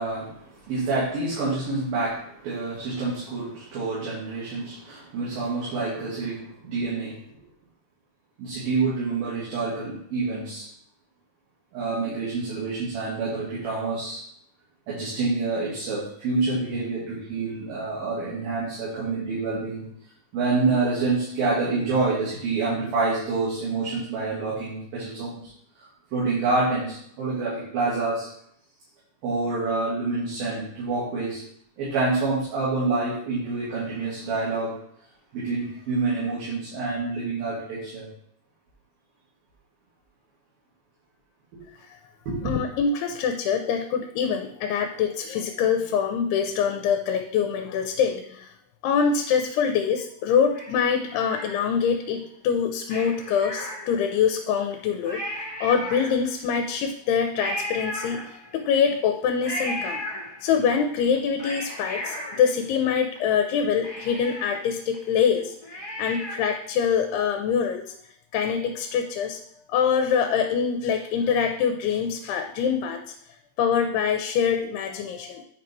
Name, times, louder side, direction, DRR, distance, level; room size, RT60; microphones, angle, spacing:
voice 1, 0.0-7.4 8.4-10.7 11.7-14.2 14.9-19.9 20.3-25.4 25.8-28.3 29.2-31.4 31.8-34.8 35.3-38.1 41.5-41.6 42.3-42.5, right 3 dB, 65° right, -8 dB, 4.0 m, -27 dB
voice 2, 42.4-48.5 48.8-60.0 60.4-65.6 66.0-67.9 68.3-73.1 73.6-75.4, left 7 dB, 85° left, 5 dB, 2.7 m, -24 dB
Cat, 50.5-52.0 52.8-54.2 54.7-54.8 55.0-56.5 57.4-58.7 59.4-60.7 61.1-63.2 63.5-63.6 63.8-66.6 67.0-67.1, equal, 65° left, 0.3 m, -35 dB
9.4 x 5.3 x 4.5 m, 0.69 s
omnidirectional pair, 4.6 m